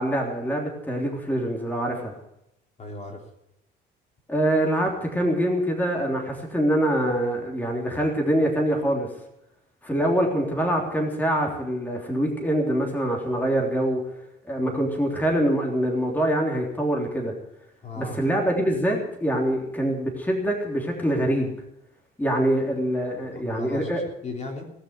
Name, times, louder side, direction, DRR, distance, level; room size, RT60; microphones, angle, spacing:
voice 1, 0.0-2.1 4.3-9.1 9.8-14.0 14.5-17.3 18.0-21.5 22.2-24.0, right 1 dB, 10° left, 0 dB, 3.2 m, -24 dB
voice 2, 2.8-3.3 14.6-14.8 17.8-18.2 23.2-24.6, left 3 dB, 30° left, 1 dB, 3.4 m, -37 dB
19.0 x 6.4 x 9.6 m, 0.81 s
cardioid pair, 100°, 21 cm